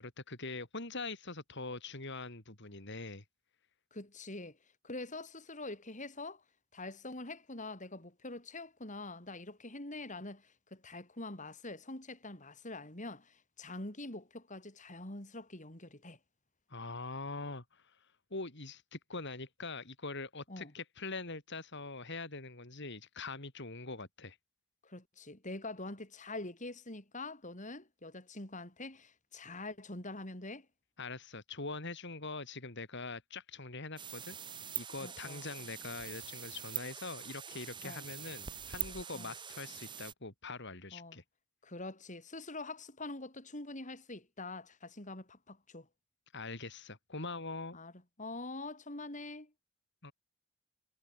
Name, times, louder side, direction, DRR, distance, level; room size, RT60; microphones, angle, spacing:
voice 1, 0.0-3.2 16.7-18.0 18.3-24.4 31.0-34.4 34.8-41.2 46.3-47.8 50.0-50.1, left 3 dB, 55° left, 4.3 m, -43 dB
voice 2, 3.9-4.6 4.8-6.4 6.7-16.2 20.5-20.7 24.8-30.7 35.0-35.4 37.8-38.0 39.1-39.3 40.9-41.2 41.6-45.9 47.7-47.9 48.2-49.5, left 2 dB, 35° left, 4.8 m, -45 dB
sound 1, 34.0-40.1, right 8 dB, 20° right, 0.9 m, -44 dB
head